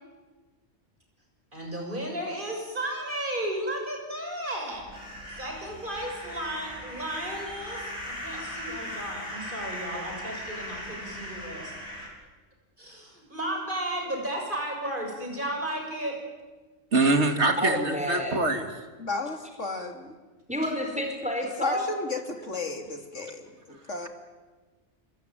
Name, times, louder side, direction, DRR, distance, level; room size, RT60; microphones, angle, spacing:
voice 1, 1.5-4.9 5.3-11.7 12.8-16.2, right 1 dB, 45° right, 1 dB, 7.2 m, -34 dB
sound 1, 4.7-12.1, left 1 dB, 60° left, 6.3 m, -39 dB
voice 2, 16.9-18.7, right 2 dB, 65° right, 6 dB, 2.8 m, -24 dB
voice 3, 17.6-18.4 20.5-22.0, equal, 5° right, 3 dB, 4.4 m, -30 dB
voice 4, 19.0-19.9 21.6-24.1, left 3 dB, 80° left, 5 dB, 3.3 m, -33 dB
27.5 x 22.5 x 9.2 m, 1.3 s
omnidirectional pair, 1.2 m